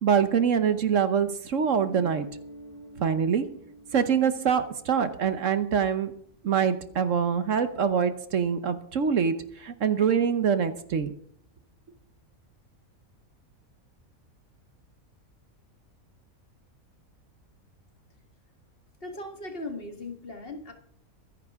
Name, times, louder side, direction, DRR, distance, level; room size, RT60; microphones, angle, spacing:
voice 1, 0.0-2.2 3.0-3.4 3.9-6.1 6.4-11.1, right 7 dB, 60° right, 10 dB, 1.2 m, -24 dB
Guitar, 1.7-6.3, right 1 dB, 80° right, 2.8 m, -48 dB
voice 2, 19.0-20.7, left 2 dB, 40° left, 4 dB, 1.9 m, -38 dB
24.0 x 10.0 x 3.6 m, 0.65 s
omnidirectional pair, 1.5 m